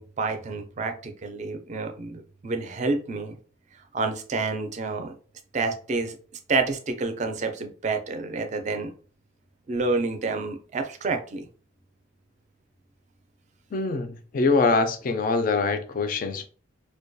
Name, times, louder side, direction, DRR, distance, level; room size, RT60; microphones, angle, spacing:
voice 1, 0.0-3.4 3.9-5.1 5.5-6.2 6.5-8.9 9.7-11.5, right 3 dB, 40° right, 0.4 m, -28 dB
voice 2, 13.7-16.5, left 4 dB, 45° left, 0.3 m, -24 dB
2.2 x 2.2 x 2.6 m
head